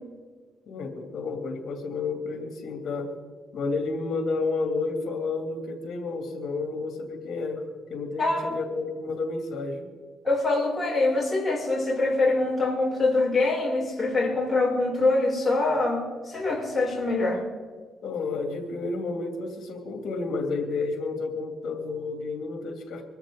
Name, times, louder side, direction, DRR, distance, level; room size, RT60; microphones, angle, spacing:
voice 1, 0.7-3.1 3.5-7.6 7.9-9.9 18.0-23.0, left 3 dB, 65° left, 3 dB, 2.7 m, -31 dB
voice 2, 8.2-8.5 10.2-17.4, left 2 dB, 15° left, -4 dB, 6.5 m, -24 dB
24.0 x 13.5 x 3.8 m, 1.5 s
cardioid pair, 95°, 0 cm